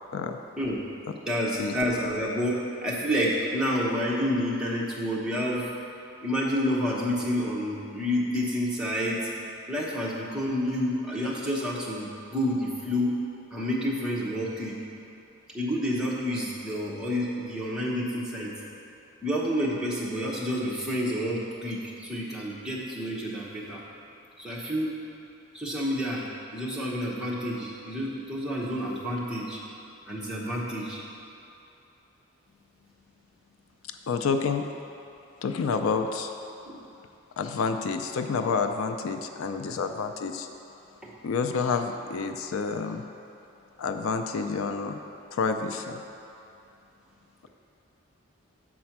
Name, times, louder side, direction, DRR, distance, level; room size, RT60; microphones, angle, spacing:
voice 1, 1.3-2.5 2.8-5.6 6.2-9.2 9.7-13.1 13.5-14.8 15.5-18.5 19.2-23.8 24.4-24.9 25.5-26.2 26.5-29.6 30.1-31.0 36.7-36.8 41.0-41.1, equal, 5° right, -7 dB, 1.0 m, -29 dB
voice 2, 34.1-34.7 35.4-36.4 37.4-40.5 41.2-43.0 43.8-45.0 45.3-46.0, left 5 dB, 75° left, 6 dB, 0.4 m, -28 dB
7.4 x 4.3 x 5.9 m, 2.8 s
head